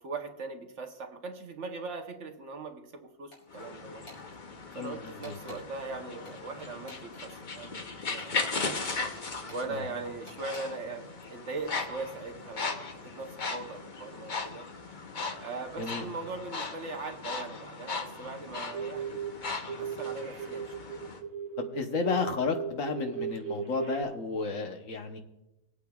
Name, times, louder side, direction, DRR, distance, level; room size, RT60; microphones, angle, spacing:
voice 1, 0.0-4.0 4.7-8.9 9.5-14.7 15.4-19.2 19.7-21.0, right 3 dB, 60° right, 4 dB, 1.2 m, -40 dB
sound 1, 3.3-3.7 4.0-4.2 5.2-5.6 6.2-7.3 8.2-8.9 9.5-9.6 10.3-10.6, left 1 dB, 85° left, 3.3 m, -51 dB
sound 2, 3.5-21.2, left 4 dB, 40° left, 0.9 m, -38 dB
voice 2, 4.7-5.4 9.7-9.9 15.8-16.1 21.6-25.2, left 4 dB, 65° left, 5 dB, 1.3 m, -32 dB
sound 3, 18.7-19.3 19.7-24.0, right 7 dB, 90° right, 1.5 m, -36 dB
25.0 x 8.5 x 2.3 m, 0.96 s
omnidirectional pair, 1.5 m